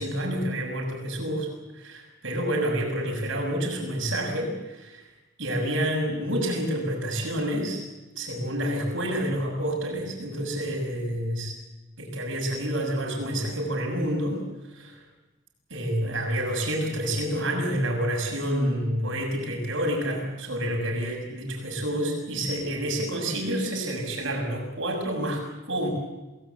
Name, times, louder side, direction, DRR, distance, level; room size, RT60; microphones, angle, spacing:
voice 1, 0.0-5.0 5.4-7.8 8.1-11.5 12.0-14.4 14.6-15.0 15.7-25.9, right 1 dB, 55° right, 2 dB, 6.7 m, -28 dB
27.5 x 18.0 x 8.4 m, 1.1 s
head